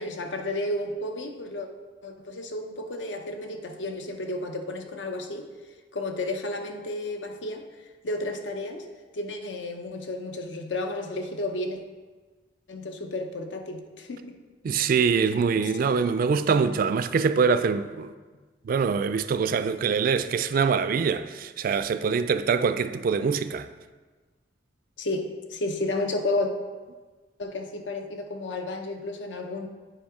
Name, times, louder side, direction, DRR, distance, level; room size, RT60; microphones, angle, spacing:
voice 1, 0.0-1.7 2.0-5.5 5.9-7.7 8.0-8.8 9.1-11.8 12.7-14.4 25.0-26.5 27.4-29.7, left 2 dB, 75° left, 0.7 m, -32 dB
voice 2, 14.6-18.1 18.6-23.7, right 5 dB, 50° right, 0.3 m, -24 dB
8.8 x 4.8 x 3.6 m
head